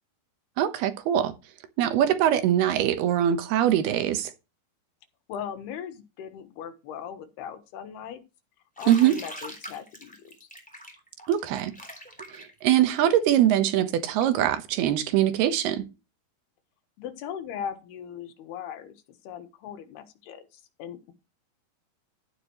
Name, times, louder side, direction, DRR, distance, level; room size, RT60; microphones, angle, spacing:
voice 1, 0.6-1.3 1.8-4.3 8.9-9.2 11.3-11.7 12.3-15.9, right 11 dB, 80° right, 3.1 m, -22 dB
voice 2, 5.3-8.2 8.8-10.3 17.0-18.9 19.2-21.1, left 8 dB, 80° left, 3.3 m, -39 dB
Bathtub (filling or washing), 8.8-14.4, equal, ahead, 2.8 m, -43 dB
12.0 x 10.0 x 3.1 m
omnidirectional pair, 4.6 m